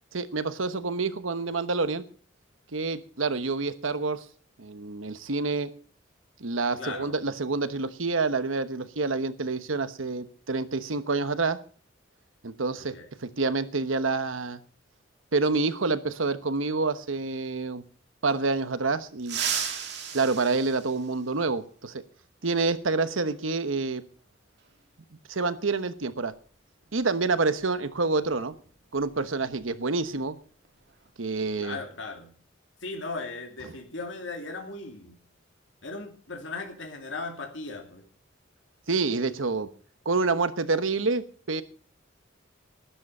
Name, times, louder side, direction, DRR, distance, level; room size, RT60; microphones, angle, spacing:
voice 1, 0.1-2.0 2.7-4.2 4.6-5.7 6.4-11.6 12.4-13.0 13.2-14.6 15.3-17.8 18.2-19.4 20.1-22.0 22.4-24.0 25.3-26.3 26.9-28.5 28.9-30.4 31.2-31.8 38.9-39.7 40.0-41.6, right 3 dB, 90° right, 12 dB, 1.1 m, -27 dB
voice 2, 6.8-7.2 12.8-13.1 31.6-32.3 32.8-35.2 35.8-38.0, left 3 dB, 65° left, 3 dB, 2.5 m, -37 dB
sound 1, 19.2-21.6 23.3-23.4 24.6-24.7 26.3-26.5 26.8-27.0 27.5-29.7 30.0-30.2 30.6-31.1, right 7 dB, 60° right, 2.8 m, -35 dB
13.0 x 11.5 x 5.5 m, 0.43 s
head